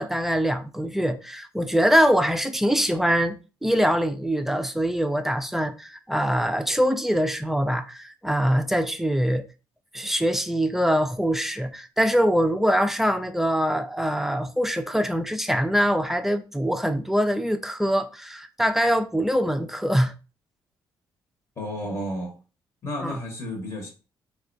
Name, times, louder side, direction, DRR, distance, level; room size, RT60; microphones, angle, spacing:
voice 1, 0.0-9.4 9.9-20.1 23.0-23.2, equal, 5° right, 0.4 m, -23 dB
voice 2, 21.6-22.3 22.8-23.9, equal, 35° left, 1.0 m, -32 dB
4.0 x 2.3 x 2.5 m
cardioid pair, 75°, 9 cm